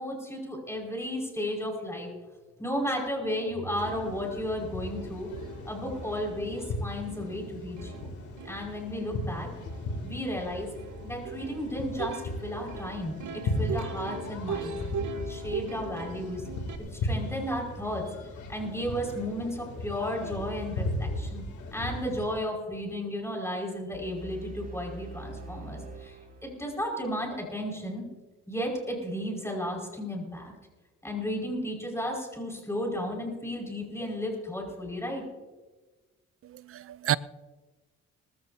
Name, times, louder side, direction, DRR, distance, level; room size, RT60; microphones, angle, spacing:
voice 1, 0.0-2.1 2.6-5.3 5.7-8.1 8.4-9.5 10.0-10.7 11.0-14.8 15.3-16.4 16.9-21.4 21.7-28.1 28.5-30.5 31.0-35.2, equal, 10° left, 5.1 m, -34 dB
Plucked string instrument, 2.9-3.0 3.2-16.8, right 5 dB, 70° right, 1.2 m, -41 dB
sound 1, 3.7-22.3, left 1 dB, 75° left, 2.8 m, -37 dB
sound 2, 23.9-27.0, right 2 dB, 30° right, 5.1 m, -44 dB
voice 2, 36.4-37.2, right 11 dB, 50° right, 0.5 m, -30 dB
19.5 x 15.5 x 2.7 m
cardioid pair, 90°, 30 cm